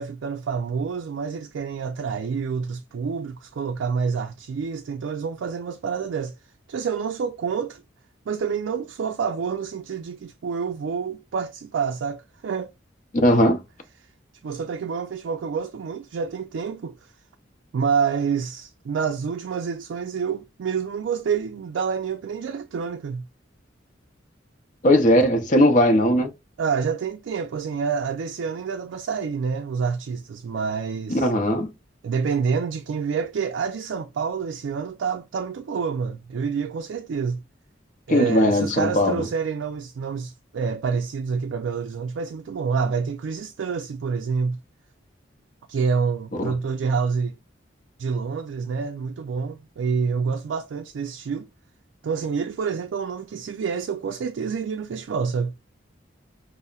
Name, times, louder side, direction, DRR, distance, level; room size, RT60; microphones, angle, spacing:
voice 1, 0.0-6.3 6.7-7.8 8.3-12.7 14.4-17.1 17.7-23.2 26.6-31.3 32.0-37.4 38.1-44.6 45.7-47.4 48.0-51.5 52.0-55.5, right 6 dB, 80° right, 0.3 m, -27 dB
voice 2, 13.2-13.6 24.8-26.3 31.2-31.7 38.1-39.3 46.4-46.5, left 1 dB, 40° left, 0.6 m, -18 dB
5.3 x 2.0 x 2.3 m
head